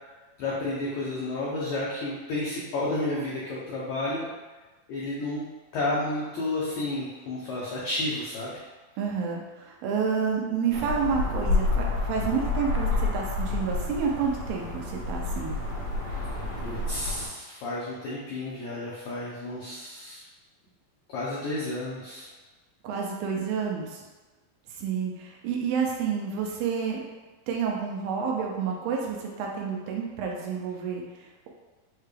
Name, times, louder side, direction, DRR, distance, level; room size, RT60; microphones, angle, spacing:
voice 1, 0.4-4.3 4.9-5.5 5.7-8.5 16.0-16.3 16.6-20.2 21.1-22.3, left 2 dB, 85° left, -6 dB, 1.6 m, -31 dB
voice 2, 9.0-15.6 22.8-24.0 24.8-27.0 27.5-31.5, right 6 dB, 80° right, 0 dB, 2.2 m, -29 dB
sound 1, 10.7-17.3, left 3 dB, 60° left, 2.0 m, -29 dB
6.6 x 2.3 x 3.2 m, 1.2 s
omnidirectional pair, 4.3 m